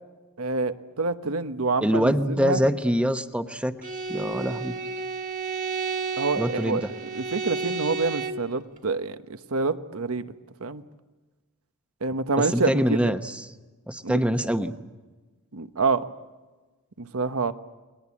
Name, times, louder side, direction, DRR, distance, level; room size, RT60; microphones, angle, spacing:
voice 1, 0.4-2.6 6.2-6.8 7.1-10.2 10.6-10.8 12.0-13.1 14.0-14.2 15.5-16.0 17.0-17.5, right 3 dB, 75° right, 10 dB, 1.1 m, -27 dB
voice 2, 1.8-3.7 4.1-4.8 6.4-6.9 12.4-13.4 13.9-14.7, equal, 5° right, 8 dB, 1.0 m, -24 dB
Bowed string instrument, 3.8-8.5, right 4 dB, 35° right, 1.9 m, -32 dB
30.0 x 21.0 x 8.5 m, 1.3 s
head